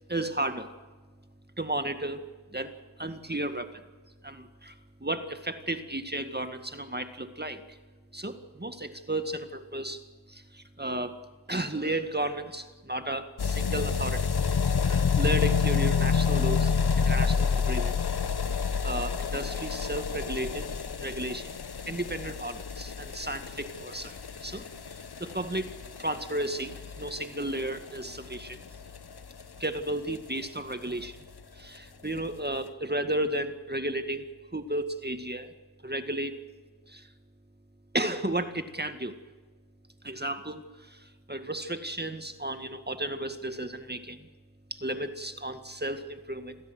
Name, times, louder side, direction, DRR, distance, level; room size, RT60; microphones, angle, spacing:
voice 1, 0.1-0.8 1.6-2.2 2.5-2.7 3.0-3.9 4.2-4.7 5.0-7.8 8.1-10.0 10.3-11.2 11.5-14.3 14.7-18.0 18.8-20.7 21.0-21.6 21.9-28.6 29.6-31.3 31.5-35.5 35.8-36.4 36.9-37.1 37.9-39.2 40.0-44.3 44.7-46.6, right 1 dB, 20° right, 8 dB, 1.9 m, -33 dB
sound 1, 13.4-30.2 30.4-30.5 30.7-30.8 31.0-31.1 31.4-31.5 32.2-32.3, left 6 dB, 55° left, 1.1 m, -29 dB
27.0 x 16.0 x 7.9 m, 1.3 s
cardioid pair, 50°, 47 cm